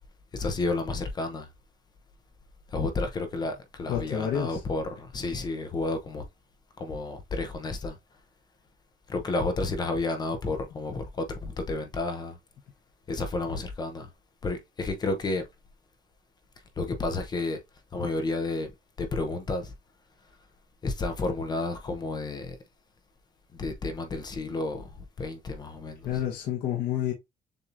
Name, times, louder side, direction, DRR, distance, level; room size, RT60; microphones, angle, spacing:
voice 1, 0.3-1.5 2.7-6.2 6.8-8.0 9.1-12.4 13.1-14.1 14.4-15.5 16.8-17.6 17.9-18.7 19.0-19.7 20.8-22.6 23.5-26.2, left 3 dB, 25° left, 0.7 m, -31 dB
voice 2, 3.9-4.6 26.0-27.1, left 10 dB, 80° left, 1.2 m, -29 dB
6.8 x 2.9 x 2.6 m
cardioid pair, 165°, 15 cm